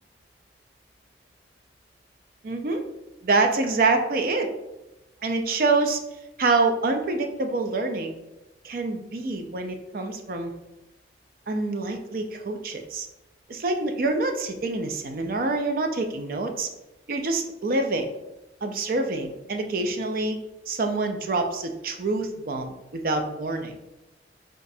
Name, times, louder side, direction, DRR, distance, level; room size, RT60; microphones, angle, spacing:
voice 1, 2.4-2.8 3.2-4.5 5.2-6.0 6.4-8.1 8.6-10.5 11.5-13.1 13.5-16.7 17.1-18.1 18.6-20.4 20.7-23.7, right 3 dB, 50° right, 5 dB, 0.5 m, -26 dB
5.9 x 2.5 x 2.7 m, 0.96 s
head